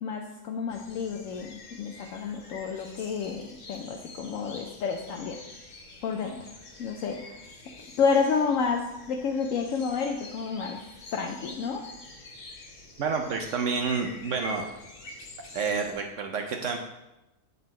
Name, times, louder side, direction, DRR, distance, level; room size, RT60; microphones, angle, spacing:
voice 1, 0.0-5.4 6.0-6.5 6.8-7.4 8.0-10.8 11.1-11.8, left 5 dB, 70° left, 2 dB, 0.9 m, -30 dB
sound 1, 0.7-15.9, left 2 dB, 45° left, 1.0 m, -46 dB
voice 2, 13.0-14.6 15.5-16.8, right 5 dB, 65° right, 3 dB, 0.9 m, -29 dB
7.8 x 4.0 x 4.3 m, 0.95 s
omnidirectional pair, 1.6 m